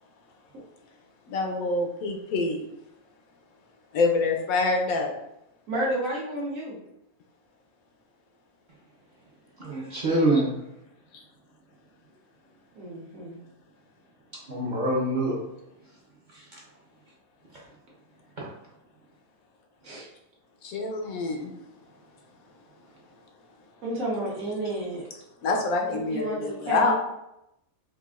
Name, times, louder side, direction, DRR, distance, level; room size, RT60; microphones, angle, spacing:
voice 1, 1.3-2.6 3.9-5.1 20.6-21.5 25.4-26.9, left 3 dB, 80° left, 2 dB, 1.1 m, -26 dB
voice 2, 5.7-6.8 12.7-13.4 19.8-20.1 23.8-25.1 26.1-26.9, right 1 dB, 70° right, -5 dB, 1.4 m, -31 dB
voice 3, 9.6-10.5 14.5-15.4 16.3-16.6 18.4-18.5, right 1 dB, 40° right, -5 dB, 0.7 m, -25 dB
4.7 x 2.4 x 2.4 m, 0.84 s
omnidirectional pair, 1.5 m